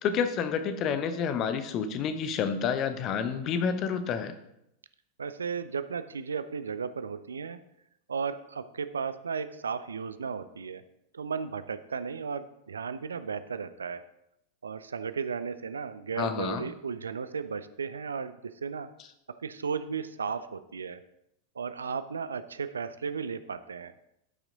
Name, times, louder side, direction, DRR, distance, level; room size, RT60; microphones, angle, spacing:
voice 1, 0.0-4.3 16.2-16.7, left 6 dB, 35° left, 9 dB, 0.9 m, -29 dB
voice 2, 5.2-7.6 8.1-10.8 11.1-14.0 14.6-18.9 19.4-21.0 21.6-23.9, right 6 dB, 70° right, 13 dB, 0.4 m, -35 dB
12.0 x 6.0 x 3.9 m, 0.81 s
figure-of-eight pair, 90°, 0 cm